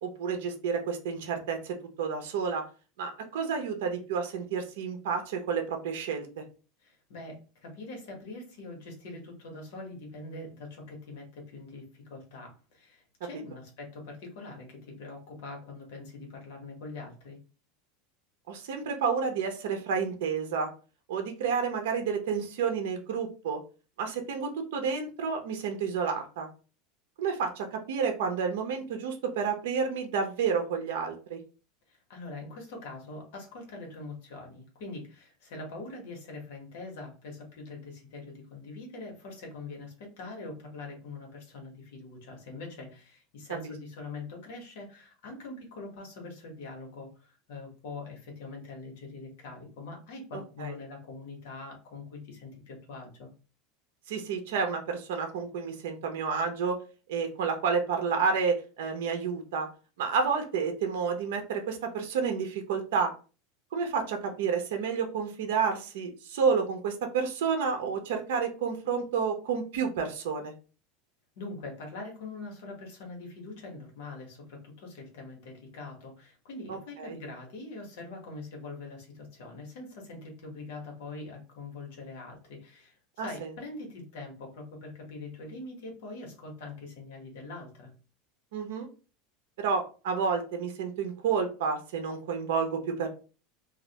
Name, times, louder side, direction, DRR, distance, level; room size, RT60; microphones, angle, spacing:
voice 1, 0.0-2.6 3.0-6.3 18.5-20.7 21.1-23.6 24.0-26.5 27.2-31.4 43.6-43.7 50.6-50.8 54.1-56.8 57.1-59.7 60.0-63.1 63.7-70.5 76.7-77.2 83.2-83.5 88.5-88.9 89.6-93.1, right 6 dB, 80° right, 4 dB, 0.5 m, -30 dB
voice 2, 6.8-17.4 31.9-53.3 71.4-87.9, left 3 dB, 75° left, 1 dB, 1.1 m, -43 dB
2.4 x 2.1 x 2.7 m, 0.34 s
supercardioid pair, 155°, 0 cm